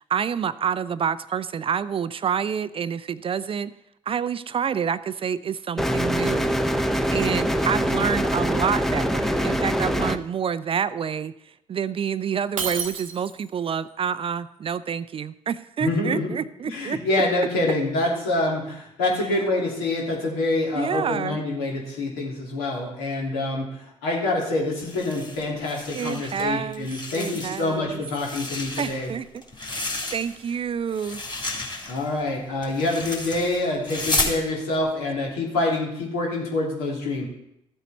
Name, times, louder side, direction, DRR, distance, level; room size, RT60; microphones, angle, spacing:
voice 1, 0.0-3.7 4.1-17.0 20.7-21.4 25.9-28.0 28.8-29.4 29.7-31.2, right 7 dB, 35° right, 15 dB, 0.5 m, -28 dB
sound 1, 5.8-10.2, equal, ahead, 0.8 m, -23 dB
Shatter, 12.6-13.6, right 5 dB, 90° right, 0.9 m, -30 dB
voice 2, 15.8-16.3 16.6-29.1 31.9-37.3, left 2 dB, 70° left, -2 dB, 2.8 m, -26 dB
sound 2, 24.7-26.4 26.7-27.7 28.1-30.5 30.9-34.4, left 2 dB, 25° left, 3.1 m, -32 dB
14.0 x 8.0 x 4.2 m, 0.79 s
figure-of-eight pair, 50°, 17 cm